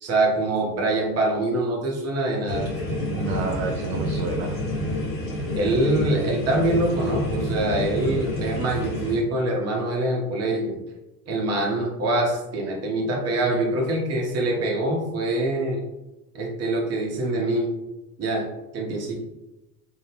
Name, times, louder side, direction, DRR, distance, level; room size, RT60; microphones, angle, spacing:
voice 1, 0.0-2.7 5.5-10.8 11.3-15.8 16.3-17.7 18.2-18.5 18.7-19.2, right 2 dB, 30° right, -1 dB, 0.9 m, -24 dB
sound 1, 2.5-9.2, left 1 dB, 45° left, 1.0 m, -28 dB
voice 2, 3.1-4.6, right 4 dB, 50° right, 2 dB, 0.5 m, -30 dB
2.6 x 2.1 x 3.4 m, 1.0 s
figure-of-eight pair, 75°, 49 cm